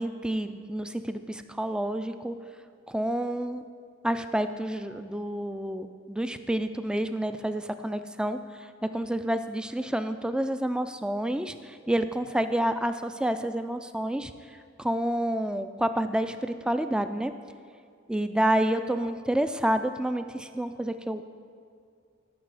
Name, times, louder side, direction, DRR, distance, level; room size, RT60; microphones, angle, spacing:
voice 1, 0.0-2.4 2.9-3.6 4.0-8.4 8.9-14.3 14.8-17.3 18.1-21.2, right 1 dB, 5° right, 10 dB, 0.3 m, -29 dB
13.0 x 5.9 x 4.8 m, 2.4 s
head